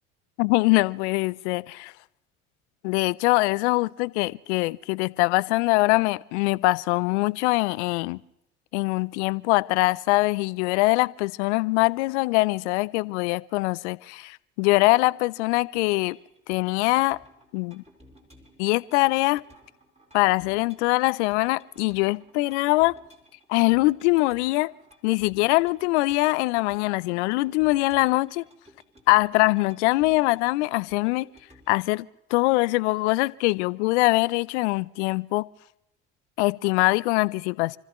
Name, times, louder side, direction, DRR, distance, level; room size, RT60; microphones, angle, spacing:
voice 1, 0.4-1.9 2.8-8.2 8.7-16.2 16.5-17.2 17.5-17.8 18.6-19.4 20.1-22.9 23.5-24.7 25.0-28.4 29.1-31.3 31.7-35.4 36.4-37.8, left 23 dB, 70° left, 0.6 m, -23 dB
sound 1, 15.7-31.9, equal, 20° right, 4.6 m, -56 dB
28.5 x 14.5 x 3.1 m
hypercardioid pair, 65°, 35 cm